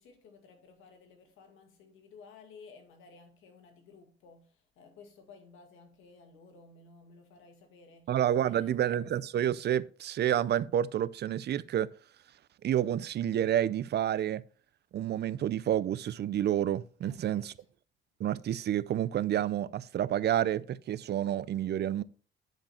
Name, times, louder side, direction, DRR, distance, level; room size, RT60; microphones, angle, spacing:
voice 1, 0.0-9.0 17.0-17.5, left 4 dB, 85° left, 2.1 m, -55 dB
voice 2, 8.1-11.9 12.6-14.4 14.9-17.5 18.2-22.0, right 11 dB, 55° right, 0.5 m, -29 dB
10.5 x 5.1 x 4.3 m
cardioid pair, 90°, 20 cm